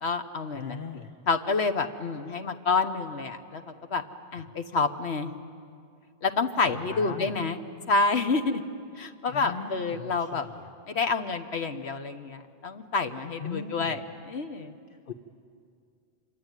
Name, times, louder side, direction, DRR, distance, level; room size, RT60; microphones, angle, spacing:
voice 1, 0.0-0.8 1.3-4.0 4.3-5.3 6.2-7.6 7.9-8.6 9.0-10.4 10.9-14.0 14.3-14.7, left 4 dB, 70° left, 8 dB, 1.5 m, -28 dB
voice 2, 0.5-1.1 4.4-4.5 6.7-7.4 9.3-10.7 13.4-14.0 14.9-15.1, left 6 dB, 55° left, 6 dB, 1.2 m, -39 dB
26.5 x 24.0 x 9.1 m, 2.3 s
omnidirectional pair, 1.1 m